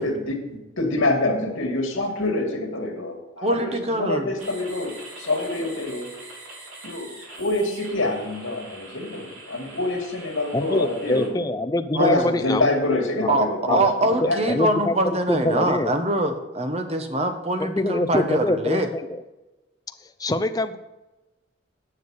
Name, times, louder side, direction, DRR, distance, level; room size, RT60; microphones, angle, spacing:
voice 1, 0.0-6.1 6.8-7.1 7.4-11.4 12.0-14.6, left 2 dB, 85° left, 3 dB, 2.3 m, -26 dB
voice 2, 3.4-4.4 11.9-12.2 13.3-18.9, right 1 dB, 30° right, 6 dB, 1.1 m, -24 dB
sound 1, 4.4-11.3, right 2 dB, 90° right, 3.7 m, -43 dB
voice 3, 10.5-12.7 13.2-13.3 13.7-13.8 14.2-15.9 17.6-19.1 20.2-20.8, left 1 dB, 20° left, 9 dB, 0.5 m, -24 dB
9.7 x 6.5 x 6.5 m, 1.1 s
head